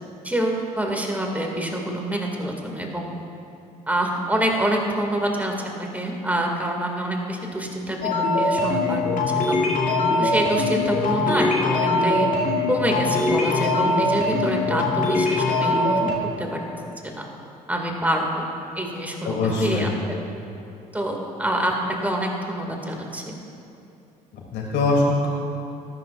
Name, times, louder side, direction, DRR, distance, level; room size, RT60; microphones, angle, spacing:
voice 1, 0.2-3.1 3.9-8.1 8.4-9.0 9.5-9.6 10.2-12.3 12.7-16.1 16.4-16.6 17.0-17.3 17.7-18.4 18.8-19.9 20.9-21.7 22.0-23.3, right 1 dB, 10° right, 1 dB, 2.4 m, -26 dB
sound 1, 8.0-16.2, left 2 dB, 40° left, 2.4 m, -22 dB
voice 2, 19.2-19.9 24.3-25.3, left 2 dB, 60° left, -2 dB, 3.1 m, -22 dB
20.0 x 10.5 x 2.6 m, 2.7 s
figure-of-eight pair, 50°, 20 cm